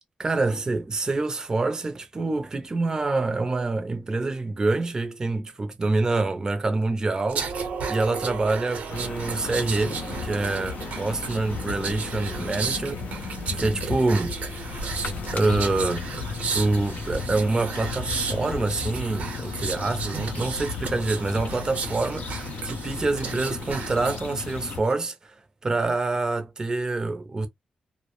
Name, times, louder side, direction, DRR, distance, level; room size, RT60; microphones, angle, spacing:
voice 1, 0.2-7.5 7.9-14.4 15.3-16.2 16.5-27.5, right 3 dB, 25° right, 0.5 m, -26 dB
sound 1, 7.3-24.3 24.7-24.9, right 5 dB, 75° right, 0.7 m, -34 dB
sound 2, 8.9-24.8, left 6 dB, 75° left, 0.4 m, -35 dB
2.2 x 2.0 x 2.9 m
wide cardioid pair, 115°, 3 cm